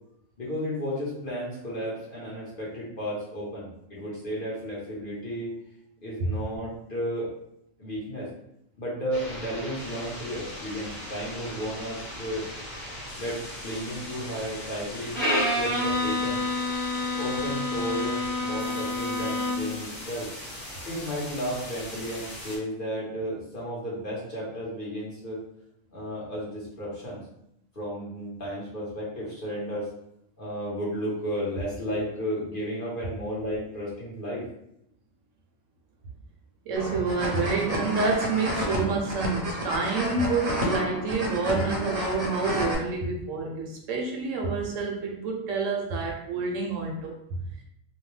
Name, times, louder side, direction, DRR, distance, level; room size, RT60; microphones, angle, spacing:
voice 1, 0.4-5.5 6.0-7.3 7.8-8.3 8.8-12.5 13.2-15.2 15.5-16.4 17.1-20.3 20.9-25.4 25.9-27.2 27.7-29.9 30.4-34.4, equal, 45° left, -7 dB, 1.1 m, -33 dB
sound 1, 9.1-22.6, left 1 dB, 80° left, 1.3 m, -40 dB
Bowed string instrument, 15.1-19.8, left 2 dB, 20° left, 1.3 m, -28 dB
voice 2, 36.7-47.6, right 4 dB, 75° right, 0 dB, 1.0 m, -28 dB
sound 2, 36.8-42.7, left 1 dB, 45° right, 0.5 m, -31 dB
2.8 x 2.2 x 3.1 m, 0.78 s
omnidirectional pair, 1.4 m